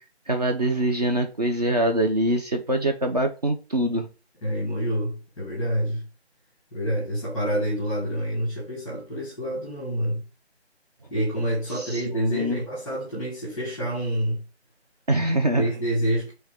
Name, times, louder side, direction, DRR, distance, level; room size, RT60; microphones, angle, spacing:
voice 1, 0.3-4.1 11.8-12.6 15.1-15.7, right 1 dB, 40° right, 0.6 m, -24 dB
voice 2, 4.4-6.0 6.7-10.2 11.1-14.4 15.5-16.3, right 1 dB, ahead, 0.9 m, -27 dB
4.6 x 3.2 x 3.4 m
figure-of-eight pair, 160°, 33 cm